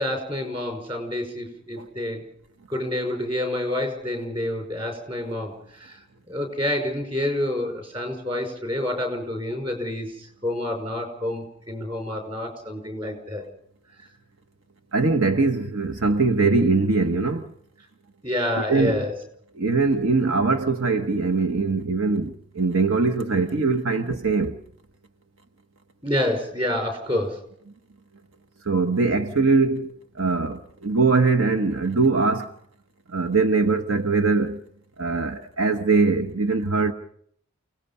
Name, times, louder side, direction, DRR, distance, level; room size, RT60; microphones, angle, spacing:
voice 1, 0.0-2.2 2.7-6.0 6.3-13.5 18.2-19.2 26.0-27.4, left 1 dB, 25° right, 5.3 m, -28 dB
voice 2, 14.9-17.5 18.7-19.1 19.6-24.6 28.6-32.5 33.1-34.6 35.0-36.9, right 3 dB, 70° right, 1.1 m, -22 dB
29.0 x 18.0 x 5.6 m
head